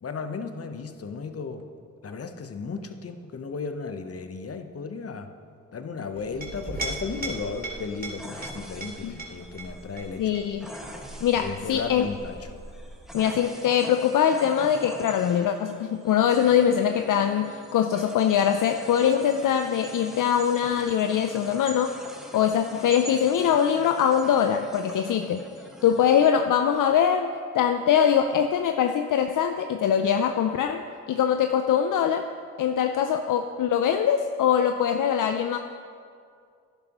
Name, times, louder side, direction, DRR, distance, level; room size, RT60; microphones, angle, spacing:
voice 1, 0.0-1.7 2.0-5.3 5.7-10.4 11.4-12.4, left 4 dB, 40° left, 7 dB, 0.9 m, -35 dB
Chink clink, 6.2-13.3, right 2 dB, 25° right, 2.7 m, -39 dB
sound 1, 7.1-26.3, equal, ahead, 1.6 m, -44 dB
voice 2, 10.2-10.7 11.2-12.1 13.1-22.0 22.3-25.4 25.8-27.3 27.5-32.3 32.6-35.6, left 8 dB, 60° left, 7 dB, 0.5 m, -23 dB
11.5 x 10.5 x 3.0 m, 2.3 s
supercardioid pair, 45°, 35 cm